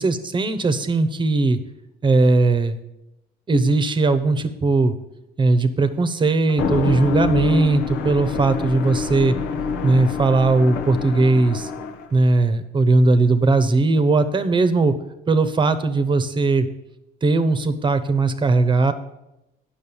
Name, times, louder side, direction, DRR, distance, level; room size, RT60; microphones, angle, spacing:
voice 1, 0.0-1.6 2.0-2.8 3.5-4.9 5.4-9.4 9.8-11.7 12.1-15.0 15.3-16.7 17.2-18.9, right 3 dB, 30° right, 11 dB, 0.9 m, -18 dB
FP Man of Rubber, 6.5-12.1, left 5 dB, 90° left, 0.9 m, -26 dB
9.5 x 6.5 x 7.0 m, 0.90 s
cardioid pair, 110°, 17 cm